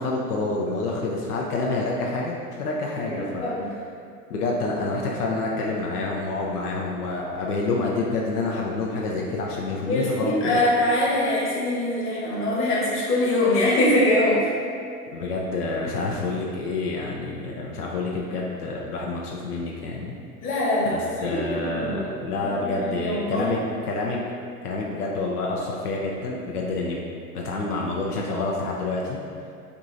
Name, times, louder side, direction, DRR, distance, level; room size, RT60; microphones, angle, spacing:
voice 1, 0.0-3.5 4.3-10.6 15.1-20.2 20.9-23.6 23.9-24.2 24.6-27.0 27.3-29.2, left 3 dB, 75° left, -2 dB, 0.6 m, -28 dB
voice 2, 3.0-3.7 9.8-14.5 20.4-22.1 22.4-23.8, left 1 dB, 30° left, -5 dB, 1.0 m, -23 dB
4.7 x 2.7 x 2.5 m, 2.4 s
figure-of-eight pair, 90°, 45 cm